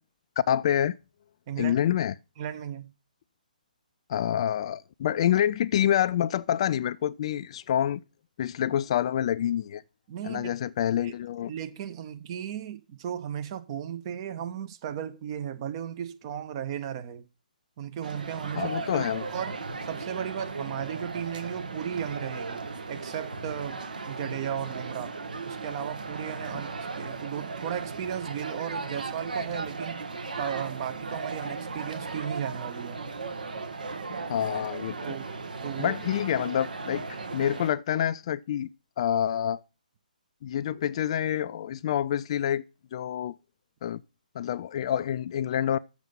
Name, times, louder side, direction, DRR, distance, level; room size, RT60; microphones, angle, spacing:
voice 1, 0.5-0.9 1.6-2.1 4.1-8.0 8.4-9.8 10.2-11.5 18.6-19.2 34.3-35.2 35.8-37.1 37.3-38.7 39.0-39.6 40.4-42.6 42.9-43.3 43.8-44.0 44.3-45.8, left 10 dB, 40° left, 0.4 m, -27 dB
voice 2, 2.4-2.9 10.1-10.5 11.0-11.1 11.5-17.2 17.8-19.6 19.9-22.6 22.9-25.2 25.5-30.0 30.3-33.0 35.0-36.0, right 9 dB, 35° right, 1.0 m, -35 dB
sound 1, 18.0-37.7, right 4 dB, 70° right, 1.4 m, -36 dB
7.3 x 6.7 x 5.5 m
figure-of-eight pair, 135°, 5 cm